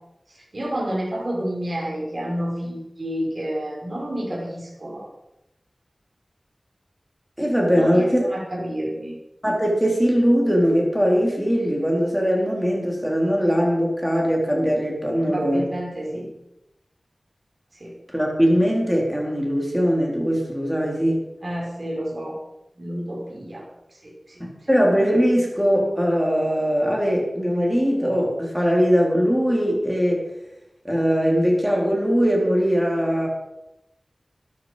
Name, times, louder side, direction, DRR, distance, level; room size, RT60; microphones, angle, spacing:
voice 1, 0.3-5.1 7.7-9.1 15.2-16.3 17.8-17.9 21.4-22.4 22.8-23.7 24.0-24.4, equal, 50° right, -3 dB, 5.6 m, -30 dB
voice 2, 7.4-8.3 9.4-15.7 18.1-21.2 24.4-30.2 30.8-33.3, equal, 5° right, -1 dB, 4.4 m, -21 dB
13.0 x 10.5 x 5.3 m, 0.90 s
wide cardioid pair, 60°, 0 cm